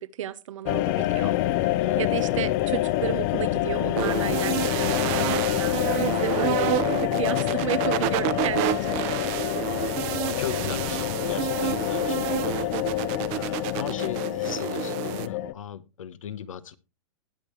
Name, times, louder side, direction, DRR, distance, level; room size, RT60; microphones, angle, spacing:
voice 1, 0.0-1.3 2.0-9.3 10.5-10.7, right 10 dB, 75° right, 1.0 m, -33 dB
sound 1, 0.6-15.5, left 15 dB, 45° left, 0.7 m, -27 dB
voice 2, 1.2-2.1 2.3-2.6 7.2-7.6 10.2-12.8 13.3-16.8, left 9 dB, 85° left, 1.1 m, -37 dB
sound 2, 4.0-15.3, right 16 dB, 40° right, 0.8 m, -29 dB
19.5 x 6.7 x 3.1 m
hypercardioid pair, 135°, 16 cm